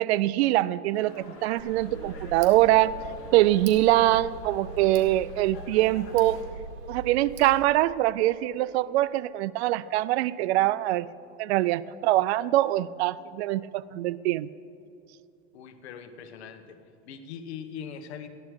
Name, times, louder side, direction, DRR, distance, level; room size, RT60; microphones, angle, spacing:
voice 1, 0.0-2.9 3.3-6.4 6.9-11.1 11.4-14.5, right 15 dB, 80° right, 17 dB, 0.5 m, -23 dB
Dog, 0.9-6.4, left 2 dB, 45° left, 2.9 m, -48 dB
Tick, 1.6-7.6, right 3 dB, 60° right, 2.2 m, -41 dB
voice 2, 15.5-16.8 17.0-18.3, left 7 dB, 90° left, 9 dB, 1.2 m, -41 dB
14.0 x 11.0 x 4.7 m, 2.8 s
supercardioid pair, 125°, 32 cm